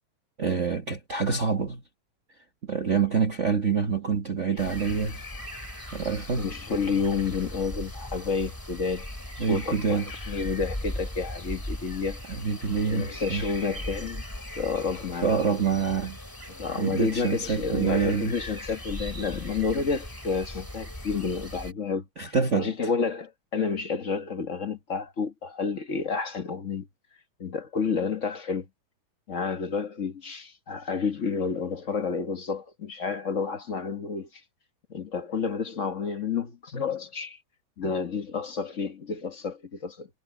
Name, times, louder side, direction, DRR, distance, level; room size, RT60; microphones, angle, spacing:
voice 1, 0.4-1.8 2.6-5.2 5.9-6.5 9.4-10.1 12.3-13.4 15.2-16.2 16.8-18.3 22.2-22.7, right 6 dB, 55° right, 0.8 m, -26 dB
sound 1, 4.6-21.7, left 1 dB, 5° left, 2.8 m, -38 dB
voice 2, 6.4-9.1 9.4-10.0 10.3-12.2 12.9-14.2 14.6-15.3 16.5-22.0 22.5-26.9 27.4-28.7 29.3-34.4 34.9-37.4 37.8-40.1, left 5 dB, 45° left, 0.9 m, -30 dB
omnidirectional pair, 3.4 m